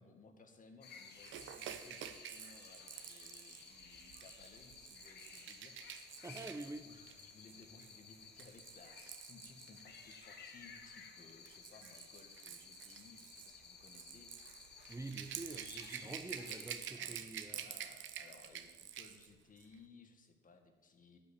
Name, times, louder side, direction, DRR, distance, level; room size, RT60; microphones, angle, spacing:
voice 1, 0.0-5.8 6.9-14.3 16.0-17.2 17.5-21.2, left 4 dB, 40° left, 5 dB, 1.8 m, -61 dB
sound 1, 0.8-16.9, left 5 dB, 60° left, 1.6 m, -56 dB
Rattle / Rattle (instrument), 1.2-10.3 11.2-19.3 19.6-19.7, right 9 dB, 75° right, 0.8 m, -49 dB
voice 2, 6.2-6.9 14.9-17.6, right 2 dB, 15° right, 6 dB, 0.8 m, -47 dB
12.0 x 5.7 x 8.6 m, 1.3 s
cardioid pair, 90°, 20 cm